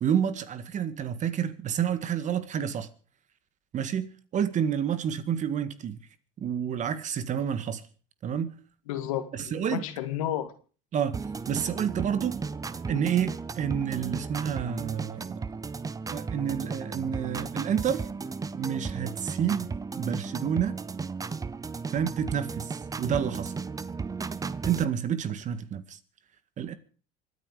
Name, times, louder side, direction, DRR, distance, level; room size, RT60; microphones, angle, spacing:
voice 1, 0.0-2.9 3.7-6.0 6.4-7.8 8.2-8.5 9.3-9.8 10.9-11.2 11.5-12.4 12.9-15.4 16.1-18.1 18.5-19.7 20.0-20.7 21.9-23.5 24.6-26.0 26.6-26.7, right 8 dB, 45° right, 1.9 m, -29 dB
voice 2, 8.9-10.5, left 11 dB, 90° left, 2.1 m, -32 dB
sound 1, 11.1-24.8, right 4 dB, 20° right, 0.9 m, -35 dB
25.0 x 9.9 x 5.1 m
supercardioid pair, 90°, 17 cm